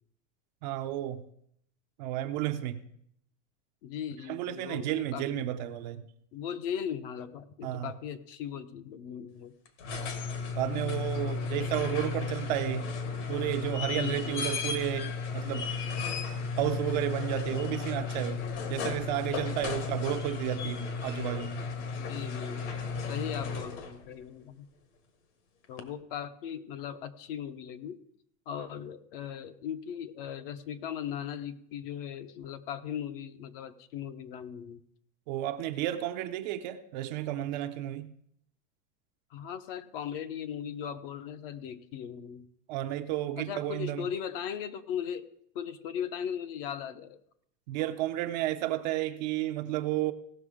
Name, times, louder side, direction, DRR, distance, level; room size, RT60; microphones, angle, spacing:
voice 1, 0.6-1.3 2.0-2.8 4.3-6.0 7.6-7.9 10.5-12.9 13.3-15.7 16.6-21.6 35.3-38.1 42.7-44.1 47.7-50.1, right 13 dB, 35° right, 7 dB, 0.5 m, -32 dB
voice 2, 3.8-5.5 6.3-9.5 13.9-14.5 19.7-19.8 21.9-22.7 23.1-24.7 25.7-28.0 28.5-34.8 39.3-42.4 43.4-45.3 45.5-47.2, left 9 dB, 45° left, 12 dB, 0.7 m, -38 dB
sound 1, 9.7-24.0 25.8-25.9, left 5 dB, 60° left, 1.7 m, -34 dB
17.5 x 6.3 x 4.9 m, 0.70 s
supercardioid pair, 175°, 39 cm